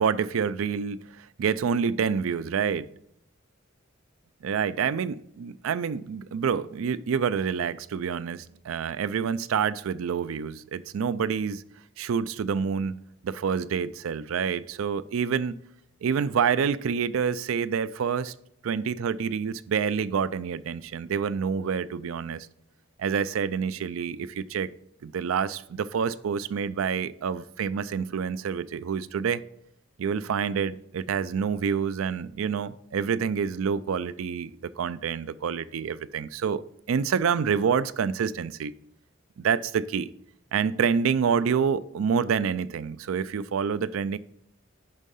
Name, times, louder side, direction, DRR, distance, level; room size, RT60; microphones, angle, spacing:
voice 1, 0.0-2.9 4.4-11.6 12.0-13.0 13.2-15.6 16.0-18.3 18.6-22.5 23.0-24.7 25.0-29.4 30.0-36.6 36.9-38.7 39.4-40.1 40.5-44.2, right 6 dB, 80° right, 0.4 m, -27 dB
10.5 x 3.7 x 5.5 m
head